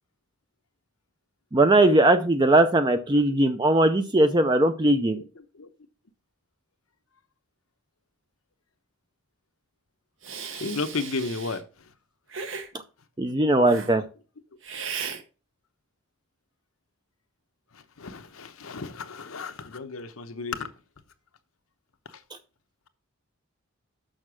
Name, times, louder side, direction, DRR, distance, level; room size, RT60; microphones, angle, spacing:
voice 1, 1.5-5.2 13.2-14.0, right 2 dB, 20° right, 0.5 m, -20 dB
voice 2, 5.1-5.7 10.5-11.6 17.7-20.7 22.1-22.2, left 3 dB, 85° left, 0.9 m, -34 dB
Hiss, 10.2-11.6 12.3-12.7 13.6-13.9 14.6-15.2, right 6 dB, 65° right, 1.2 m, -36 dB
6.6 x 6.0 x 6.1 m
head